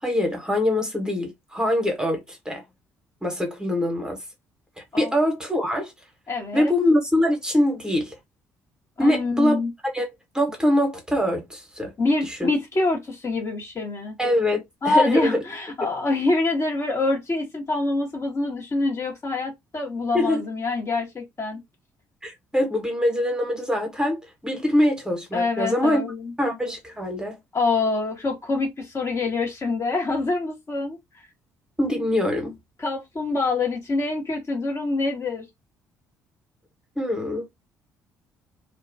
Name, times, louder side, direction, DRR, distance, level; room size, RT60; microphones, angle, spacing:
voice 1, 0.0-2.6 3.2-4.2 4.8-5.9 6.5-8.2 9.0-9.6 9.9-10.1 10.3-11.9 12.2-12.5 14.2-15.4 20.1-20.4 22.2-26.1 26.4-27.4 31.8-32.6 37.0-37.5, left 1 dB, 10° right, 1.0 m, -23 dB
voice 2, 6.3-6.7 9.0-9.7 12.0-14.2 14.8-21.6 25.3-26.3 27.5-31.0 32.8-35.5, left 3 dB, 35° left, 1.0 m, -25 dB
2.3 x 2.2 x 2.5 m
hypercardioid pair, 50°, 8 cm